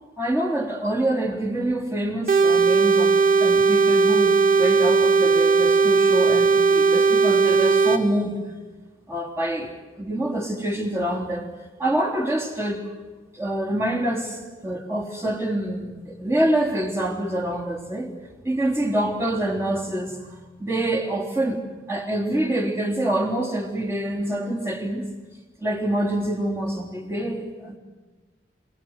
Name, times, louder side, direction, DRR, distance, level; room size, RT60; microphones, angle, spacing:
voice 1, 0.2-8.4 9.1-11.5 11.8-12.8 13.3-18.1 18.4-21.6 21.9-25.0 25.6-27.8, right 1 dB, 15° right, 0 dB, 3.3 m, -26 dB
sound 1, 2.3-8.0, right 4 dB, 50° right, 1.8 m, -18 dB
27.5 x 19.0 x 8.0 m, 1.2 s
head